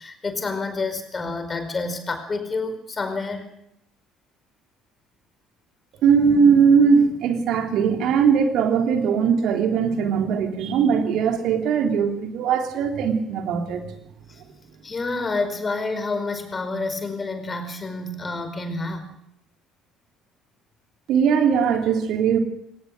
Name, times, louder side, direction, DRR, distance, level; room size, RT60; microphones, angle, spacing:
voice 1, 0.0-3.5 14.8-19.1, left 3 dB, 30° left, 8 dB, 4.9 m, -28 dB
voice 2, 6.0-13.8 21.1-22.4, right 6 dB, 55° right, 4 dB, 3.2 m, -20 dB
23.0 x 18.5 x 6.7 m, 0.75 s
figure-of-eight pair, 55°, 0 cm